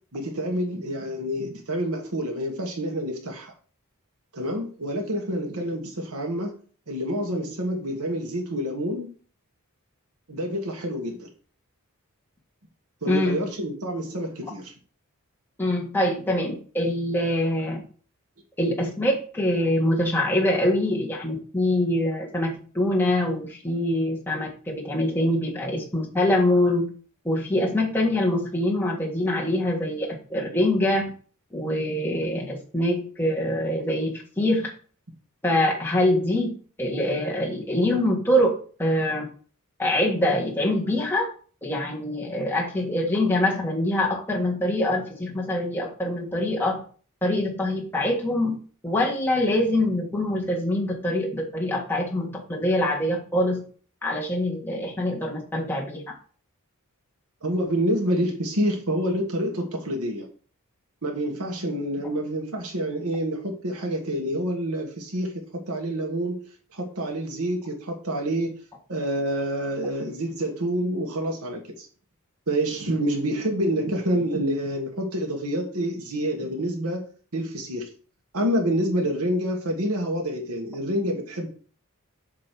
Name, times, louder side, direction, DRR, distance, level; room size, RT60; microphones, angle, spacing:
voice 1, 0.1-3.5 4.3-6.5 6.9-9.1 10.3-11.3 13.0-14.7 57.4-60.3 61.0-68.6 68.9-71.9 72.5-77.0 77.3-77.9 78.3-81.5, equal, 85° right, 1 dB, 1.6 m, -27 dB
voice 2, 13.0-13.5 15.6-17.8 18.6-26.9 27.2-31.1 31.5-34.7 35.4-36.5 36.8-38.5 38.8-39.2 39.8-41.3 41.6-46.8 47.2-48.6 48.8-53.6 54.0-56.1, left 1 dB, 10° left, -2 dB, 1.8 m, -24 dB
7.5 x 3.1 x 6.0 m, 0.42 s
head